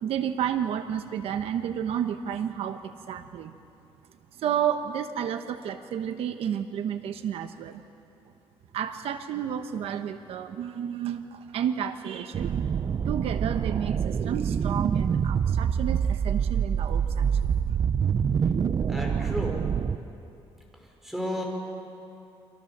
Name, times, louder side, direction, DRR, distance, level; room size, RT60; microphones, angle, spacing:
voice 1, 0.0-3.6 4.3-7.8 8.7-12.6 13.0-17.8, right 9 dB, 75° right, 8 dB, 1.0 m, -31 dB
sound 1, 12.3-20.0, right 7 dB, 40° right, 0.6 m, -26 dB
voice 2, 18.9-19.7 20.7-21.4, equal, 5° right, 0 dB, 5.4 m, -33 dB
30.0 x 25.0 x 7.3 m, 2.7 s
cardioid pair, 145°, 10 cm